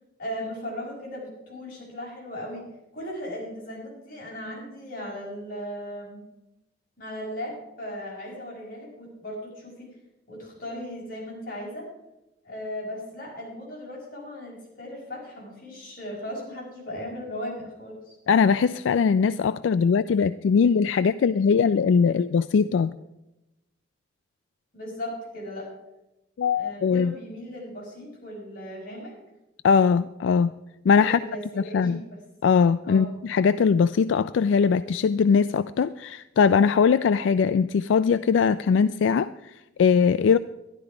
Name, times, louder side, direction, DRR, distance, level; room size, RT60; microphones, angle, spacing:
voice 1, 0.2-2.7 2.9-6.2 7.0-9.9 10.3-11.9 12.4-18.2 24.7-25.7 26.5-29.1 31.0-32.2 32.8-33.1, equal, 50° left, -4 dB, 5.5 m, -37 dB
voice 2, 18.3-22.9 26.4-27.1 29.6-30.5 30.8-31.2 31.6-32.0 32.4-40.4, left 6 dB, 80° left, 14 dB, 0.3 m, -21 dB
12.0 x 11.5 x 4.8 m, 0.94 s
head